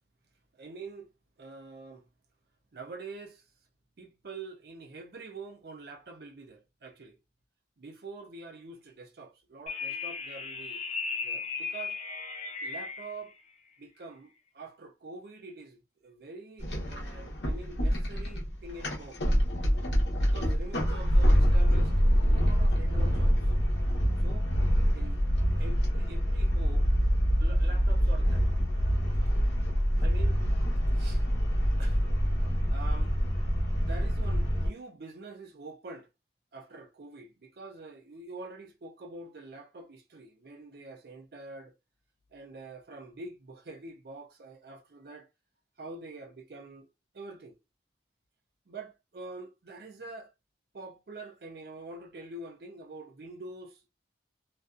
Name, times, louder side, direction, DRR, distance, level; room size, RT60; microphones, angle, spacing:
voice 1, 0.6-1.1 1.4-2.0 2.7-3.4 4.0-7.2 7.8-10.8 11.2-12.0 12.6-13.3 13.8-19.2 20.2-21.9 22.3-23.3 24.2-24.5 24.9-25.2 25.6-26.9 27.4-28.5 30.0-30.4 30.9-31.2 31.8-32.1 32.7-33.1 33.8-36.1 36.5-41.7 42.3-45.3 45.8-46.9 47.1-47.6 48.7-50.3 50.7-53.9, right 3 dB, 55° right, 0.5 m, -45 dB
sound 1, 9.7-13.1, left 5 dB, 35° left, 0.3 m, -36 dB
sound 2, 16.6-34.7, equal, 75° left, 0.9 m, -26 dB
2.4 x 2.2 x 2.4 m
head